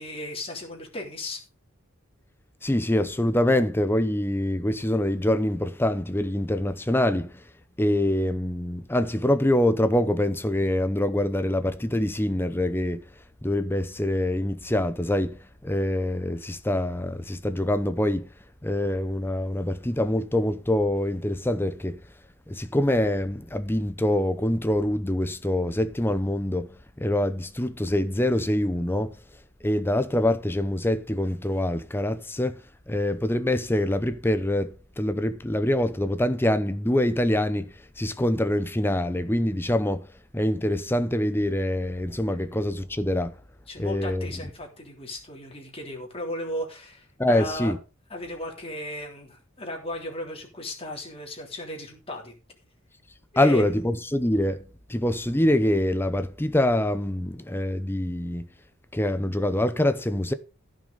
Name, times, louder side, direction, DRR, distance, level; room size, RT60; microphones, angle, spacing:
voice 1, 0.0-1.4 43.7-47.7 48.1-52.3 53.3-53.6, left 1 dB, 25° left, 3.4 m, -36 dB
voice 2, 2.6-7.3 7.8-13.0 13.4-15.4 15.6-18.3 18.6-22.0 22.5-29.1 29.6-32.6 32.9-37.7 38.0-40.0 40.3-43.3 43.8-44.3 47.2-47.8 53.4-54.6 54.9-58.5 58.9-60.3, left 1 dB, 10° left, 0.7 m, -25 dB
15.0 x 6.3 x 5.2 m
head